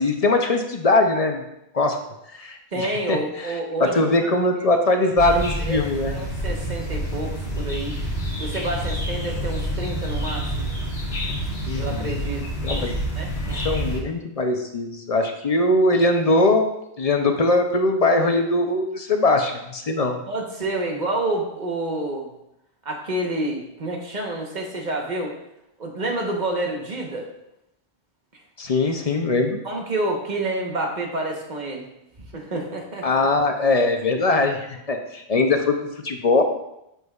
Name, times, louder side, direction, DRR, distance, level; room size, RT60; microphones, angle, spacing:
voice 1, 0.0-1.4 1.7-2.0 2.3-6.1 11.7-12.1 12.6-13.0 13.6-20.2 28.6-29.6 33.0-36.4, left 2 dB, 45° left, 5 dB, 0.6 m, -21 dB
voice 2, 2.7-4.3 5.2-5.8 6.1-7.9 8.4-10.7 11.3-11.4 11.8-12.4 13.2-13.7 20.3-22.3 22.8-25.3 25.8-27.3 29.6-31.9 32.3-33.1, right 2 dB, 45° right, 1 dB, 1.2 m, -28 dB
sound 1, 5.2-14.0, equal, 65° left, 2.1 m, -28 dB
8.0 x 6.1 x 2.4 m, 0.83 s
omnidirectional pair, 1.1 m